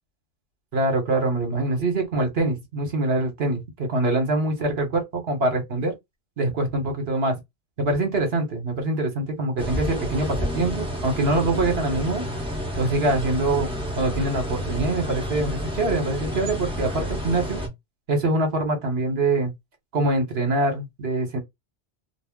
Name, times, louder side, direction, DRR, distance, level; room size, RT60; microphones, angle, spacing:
voice 1, 0.7-5.9 6.4-7.4 7.8-12.3 12.8-13.7 14.0-17.6 18.1-19.5 19.9-21.4, right 2 dB, 60° right, 1.2 m, -24 dB
sound 1, 9.6-17.7, equal, 5° right, 0.6 m, -30 dB
2.4 x 2.0 x 3.5 m
omnidirectional pair, 1.2 m